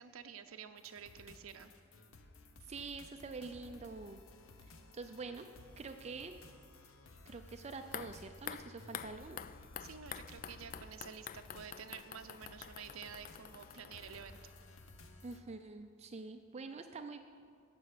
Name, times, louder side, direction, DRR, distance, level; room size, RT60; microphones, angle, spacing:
voice 1, 0.0-1.7 9.8-14.5, right 7 dB, 85° right, 8 dB, 0.6 m, -50 dB
sound 1, 0.8-15.4, left 2 dB, 80° left, 1.1 m, -57 dB
voice 2, 2.7-4.2 4.9-5.5 5.8-6.4 7.3-9.4 15.2-17.2, right 4 dB, 30° right, 6 dB, 0.5 m, -46 dB
sound 2, 7.8-14.9 15.2-15.3, left 9 dB, 40° left, 0.3 m, -49 dB
17.5 x 6.9 x 6.6 m, 2.2 s
head